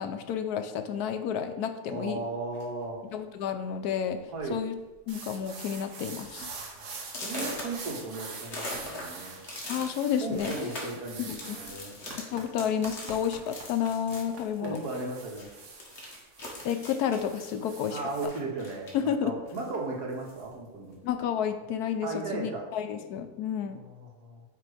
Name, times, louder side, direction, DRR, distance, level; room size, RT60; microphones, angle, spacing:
voice 1, 0.0-2.2 3.1-4.2 4.5-4.8 5.1-6.5 9.7-10.7 11.2-11.6 12.2-14.8 16.6-18.0 18.9-19.4 21.0-23.8, left 8 dB, 75° left, 8 dB, 1.1 m, -31 dB
voice 2, 1.9-3.0 4.3-4.6 6.8-6.9 7.2-9.3 10.2-11.9 14.6-15.5 17.9-21.0 22.0-22.6 23.7-24.4, right 3 dB, 75° right, -1 dB, 1.9 m, -36 dB
sound 1, 2.5-2.9 3.7-3.8 4.2-4.4 4.7-5.2 5.6-5.7 6.2-6.3 7.0-15.1 15.4-19.1 19.5-20.5, left 1 dB, 45° left, 1.7 m, -42 dB
sound 2, 5.1-18.3, right 4 dB, 55° right, 1.2 m, -44 dB
8.9 x 3.1 x 4.8 m, 1.1 s
omnidirectional pair, 1.7 m